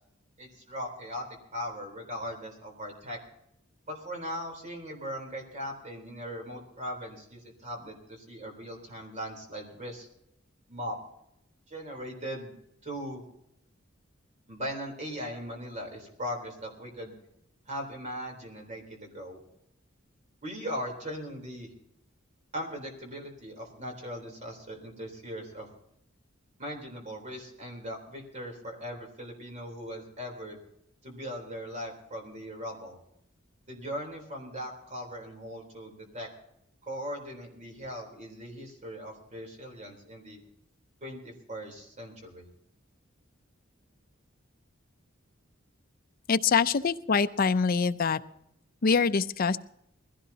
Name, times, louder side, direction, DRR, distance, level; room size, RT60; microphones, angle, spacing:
voice 1, 0.4-3.2 3.9-10.1 10.7-11.0 11.7-12.5 12.8-13.2 14.5-17.1 17.7-19.4 20.4-21.7 22.5-25.7 26.6-30.6 31.0-33.0 33.7-36.3 36.9-40.4 41.0-42.5, equal, 35° right, 3 dB, 3.7 m, -39 dB
voice 2, 46.3-48.2 48.8-49.6, left 5 dB, 45° left, 11 dB, 0.5 m, -24 dB
21.0 x 16.0 x 2.8 m, 0.80 s
head